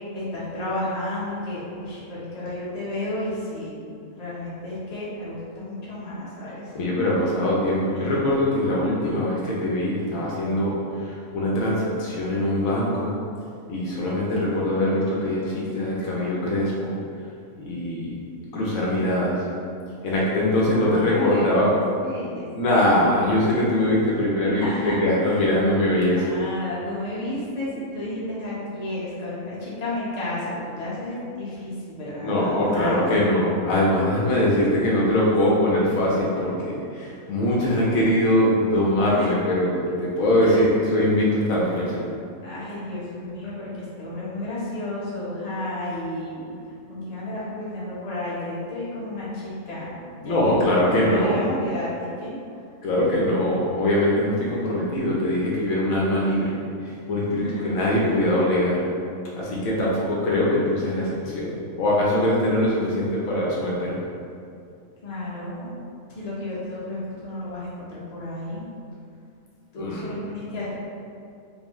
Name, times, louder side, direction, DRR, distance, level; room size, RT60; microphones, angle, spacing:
voice 1, 0.1-6.7 20.6-22.5 24.5-25.5 26.1-33.1 34.5-35.1 35.7-36.0 39.0-39.3 40.4-40.8 41.7-41.9 42.4-50.4 50.6-52.3 57.4-57.9 65.0-65.7 66.1-68.6 69.7-70.7, left 1 dB, 35° left, -8 dB, 0.9 m, -32 dB
voice 2, 6.7-13.1 13.7-16.9 17.6-18.1 18.5-19.3 20.0-21.7 22.5-24.7 25.0-26.4 32.2-42.0 50.2-51.4 52.8-56.5 57.1-58.7 59.3-64.0 69.8-70.1, left 1 dB, 75° left, -5 dB, 1.0 m, -22 dB
5.3 x 2.0 x 3.0 m, 2.4 s
omnidirectional pair, 1.5 m